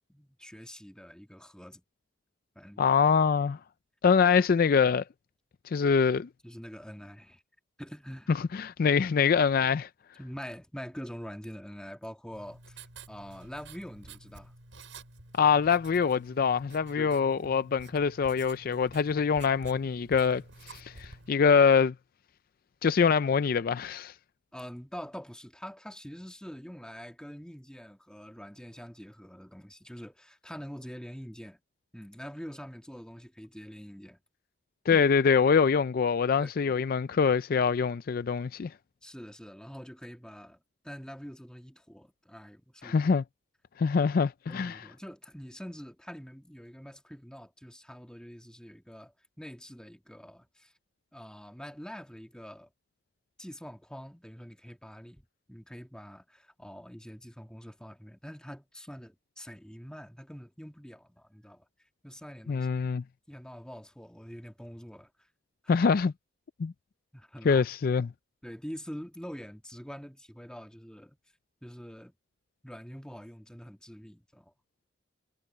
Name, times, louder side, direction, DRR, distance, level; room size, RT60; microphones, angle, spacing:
voice 1, 0.1-1.8 2.6-2.8 6.4-7.4 7.8-8.4 10.2-14.5 17.0-17.2 24.5-31.6 31.9-34.2 34.9-35.0 36.4-36.7 39.0-40.6 40.8-43.0 44.5-50.7 51.1-52.7 53.4-61.7 62.0-62.7 62.9-65.3 65.6-65.8 67.1-67.7 68.4-71.2 71.6-72.1 72.6-74.5, equal, 5° left, 2.2 m, -45 dB
voice 2, 2.8-3.6 4.0-5.0 5.7-6.3 8.3-9.9 15.3-21.9 22.8-24.1 34.9-38.7 42.8-43.2 43.8-44.8 62.5-63.0 65.7-66.1 66.6-66.7 67.5-68.1, left 6 dB, 50° left, 0.4 m, -24 dB
Writing, 12.3-21.3, right 3 dB, 85° right, 7.3 m, -51 dB
head